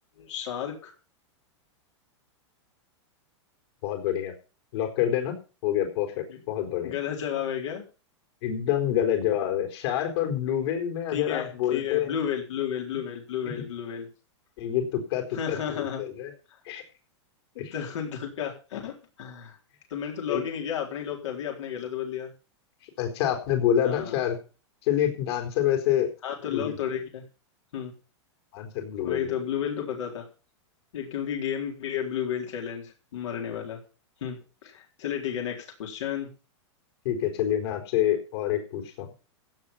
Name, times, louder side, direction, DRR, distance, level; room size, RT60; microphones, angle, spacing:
voice 1, 0.2-0.9 6.3-6.4 6.8-7.8 11.1-14.1 15.3-16.0 17.7-19.6 19.9-22.3 23.8-24.2 26.2-27.2 27.7-27.9 29.0-30.2 30.9-33.8 34.2-36.3, left 9 dB, 80° left, 1 dB, 3.9 m, -32 dB
voice 2, 3.8-4.3 4.7-5.4 5.6-6.9 8.4-12.1 13.6-13.7 14.6-16.3 16.7-16.8 17.6-17.7 20.3-20.4 23.0-24.4 24.8-26.1 26.5-26.7 28.5-29.3 37.0-39.1, left 10 dB, 60° left, 5 dB, 4.2 m, -27 dB
16.0 x 7.8 x 5.7 m, 0.35 s
supercardioid pair, 145°, 15 cm